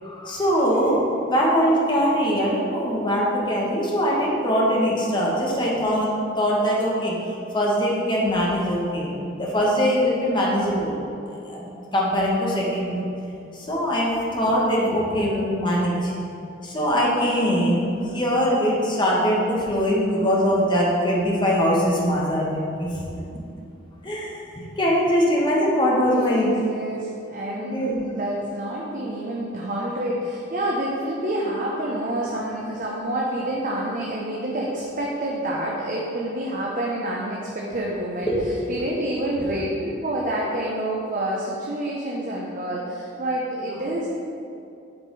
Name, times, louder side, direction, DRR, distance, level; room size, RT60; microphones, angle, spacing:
voice 1, 0.0-1.0 1.3-6.1 6.4-7.1 7.5-10.9 11.5-11.7 11.9-13.0 13.5-16.1 16.6-22.9 24.0-24.4 24.8-26.5 27.7-27.9 38.2-38.4 39.4-39.5, equal, 25° left, -4 dB, 1.5 m, -22 dB
voice 2, 25.9-38.3 38.7-44.1, right 1 dB, 45° right, -3 dB, 0.9 m, -28 dB
8.9 x 5.2 x 4.8 m, 2.6 s
head